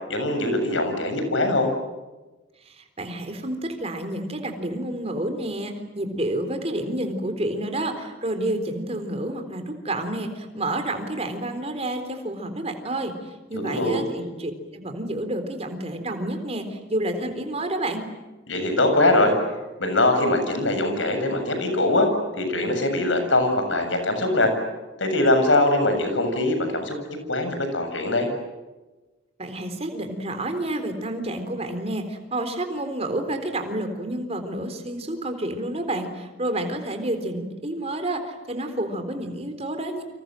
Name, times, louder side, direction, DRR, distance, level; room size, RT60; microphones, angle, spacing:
voice 1, 0.1-1.7 13.5-14.0 18.5-19.3 19.8-22.1 22.4-24.5 25.0-27.0 27.3-28.3, left 2 dB, 90° left, 6 dB, 7.4 m, -22 dB
voice 2, 2.7-13.1 13.5-18.1 29.4-40.0, right 1 dB, 35° right, 7 dB, 4.0 m, -29 dB
29.5 x 26.0 x 7.8 m, 1.1 s
head